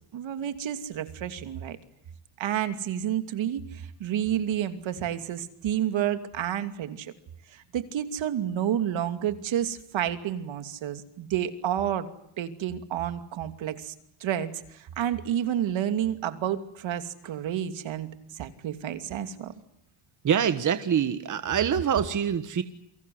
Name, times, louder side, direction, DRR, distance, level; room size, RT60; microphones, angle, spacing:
voice 1, 0.1-1.8 2.4-7.1 7.5-12.1 12.4-13.9 14.2-19.5, right 10 dB, 65° right, 9 dB, 2.8 m, -30 dB
voice 2, 20.2-22.6, right 8 dB, 35° right, 10 dB, 1.5 m, -25 dB
29.5 x 24.0 x 7.9 m, 0.76 s
cardioid pair, 160°, 49 cm